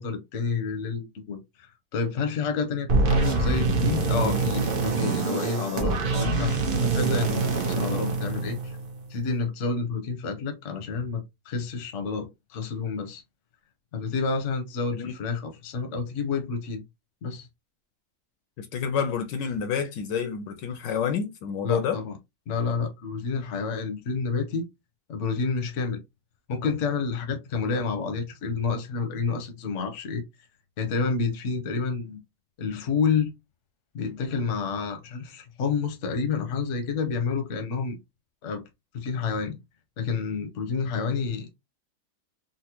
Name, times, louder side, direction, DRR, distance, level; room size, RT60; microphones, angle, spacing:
voice 1, 0.0-8.8 9.1-13.2 13.9-16.8 17.2-17.5 21.6-22.2 22.5-24.7 25.1-26.0 26.5-30.2 30.8-32.2 32.6-33.3 33.9-38.0 38.4-38.6 38.9-39.6 40.0-41.5, left 5 dB, 55° left, 0.8 m, -29 dB
sound 1, 2.9-9.1, right 3 dB, 70° right, 0.5 m, -25 dB
voice 2, 18.6-22.0, left 7 dB, 75° left, 1.2 m, -29 dB
4.1 x 2.1 x 2.9 m
omnidirectional pair, 2.1 m